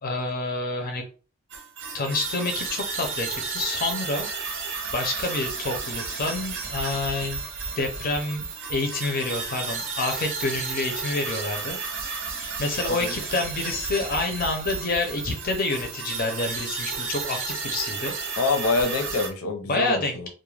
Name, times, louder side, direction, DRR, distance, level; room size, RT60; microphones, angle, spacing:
voice 1, 0.0-1.0 1.9-4.3 4.9-7.4 7.8-11.8 12.6-18.1 19.7-20.3, left 2 dB, 40° left, 4 dB, 0.5 m, -28 dB
sound 1, 1.5-19.3, right 4 dB, 60° right, 0.6 m, -32 dB
voice 2, 18.4-20.3, left 3 dB, 90° left, 5 dB, 0.6 m, -26 dB
2.3 x 2.1 x 3.1 m, 0.36 s
head